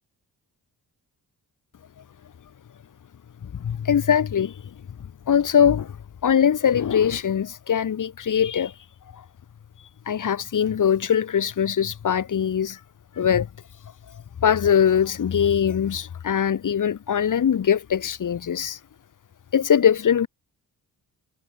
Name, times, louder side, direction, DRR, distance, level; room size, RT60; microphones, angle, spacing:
voice 1, 3.4-4.6 5.3-6.0 6.2-8.7 10.1-12.8 13.2-13.5 14.4-18.8 19.5-20.3, left 8 dB, 55° left, 2.5 m, -21 dB
wide cardioid pair, 130°, 37 cm